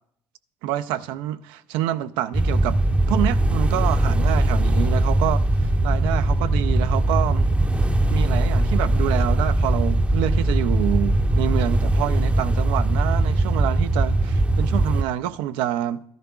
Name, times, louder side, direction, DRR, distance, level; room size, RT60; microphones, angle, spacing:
voice 1, 0.6-2.8 3.1-7.5 8.1-16.0, right 12 dB, 80° right, 0.4 m, -27 dB
sound 1, 2.3-15.0, right 1 dB, 15° right, 0.6 m, -20 dB
12.5 x 10.5 x 2.3 m
supercardioid pair, 65°, 8 cm